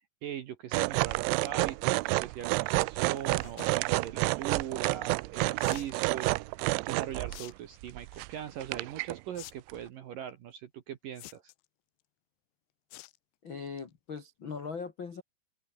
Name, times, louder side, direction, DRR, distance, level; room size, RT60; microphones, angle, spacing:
voice 1, 0.2-11.5, right 10 dB, 65° right, 2.2 m, -40 dB
sound 1, 0.7-7.4 7.8-8.3 8.6-9.2 9.7-9.8, right 24 dB, 85° right, 2.9 m, -29 dB
sound 2, 3.3-3.7 5.6-5.9 7.3-7.5 7.9-8.2 9.3-9.5 9.8-9.9 11.2-11.7 12.9-13.2 13.6-13.8 14.2-14.3 14.5-14.6, left 20 dB, 80° left, 2.9 m, -47 dB
voice 2, 13.4-15.2, left 5 dB, 60° left, 1.3 m, -40 dB
open air
omnidirectional pair, 5.5 m